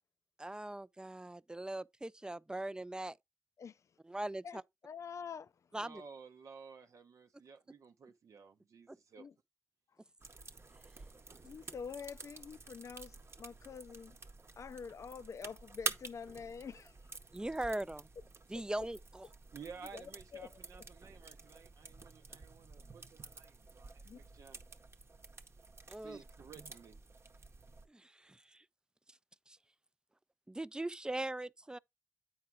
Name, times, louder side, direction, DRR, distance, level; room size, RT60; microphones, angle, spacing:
voice 1, 0.4-3.2 4.1-4.6 5.7-6.0 8.9-9.0 17.3-18.1 18.5-19.2 25.9-26.2 27.9-28.6 29.5-29.6 30.5-31.8, right 1 dB, 15° right, 0.3 m, -40 dB
voice 2, 3.6-3.9 4.4-5.7 9.2-9.3 9.9-10.0 11.4-14.2 14.6-17.0 19.9-20.6 24.0-24.2, left 6 dB, 70° left, 0.4 m, -47 dB
voice 3, 5.8-9.3 19.5-24.6 25.9-27.0, right 5 dB, 80° right, 0.6 m, -54 dB
sound 1, 10.2-27.9, right 3 dB, 50° right, 0.8 m, -49 dB
8.6 x 4.6 x 3.6 m
cardioid pair, 50°, 5 cm